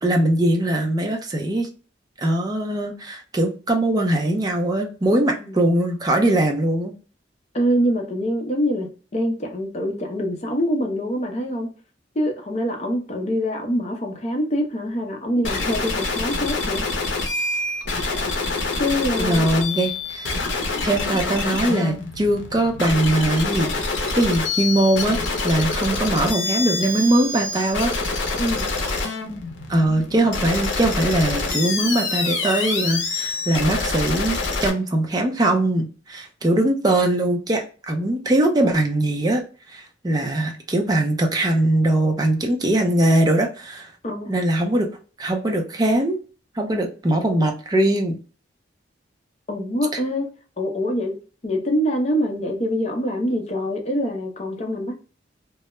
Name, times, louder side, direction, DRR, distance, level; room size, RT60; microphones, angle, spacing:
voice 1, 0.0-1.7 2.2-6.9 19.2-20.3 20.8-23.7 24.1-27.9 29.7-39.4 39.7-43.9 44.3-44.9 45.2-46.2 46.6-48.2, right 1 dB, 20° right, 0.4 m, -21 dB
voice 2, 5.1-5.6 7.5-11.7 12.2-16.8 18.8-19.5 28.4-28.7 44.0-44.3 49.5-50.3 50.6-51.2 51.4-54.9, equal, 35° left, 0.6 m, -24 dB
sound 1, 15.4-34.7, left 3 dB, 80° left, 0.6 m, -26 dB
2.2 x 2.0 x 2.9 m
head